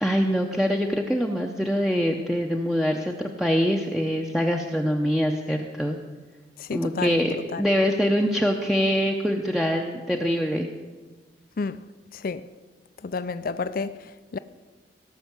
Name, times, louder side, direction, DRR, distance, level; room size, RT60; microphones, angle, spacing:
voice 1, 0.0-6.0 6.7-10.7, equal, ahead, 0.7 m, -24 dB
voice 2, 6.6-7.6 11.6-11.8 12.1-12.5 13.0-14.4, left 4 dB, 55° left, 0.5 m, -31 dB
17.5 x 6.4 x 8.1 m
head